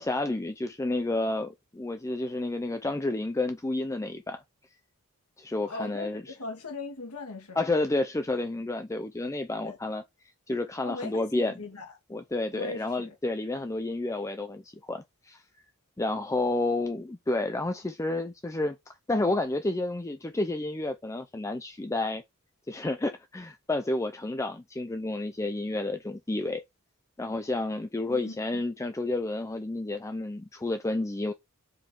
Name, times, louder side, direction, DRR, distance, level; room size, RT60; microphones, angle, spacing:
voice 1, 0.0-4.4 5.4-6.2 7.6-10.0 10.5-11.5 12.1-15.4 16.0-22.2 22.7-26.6 27.2-31.3, left 2 dB, 15° left, 0.4 m, -30 dB
voice 2, 5.6-7.6 9.6-9.8 10.8-12.0 12.5-13.2 28.1-28.6, left 3 dB, 85° left, 2.0 m, -39 dB
5.0 x 4.4 x 5.3 m
head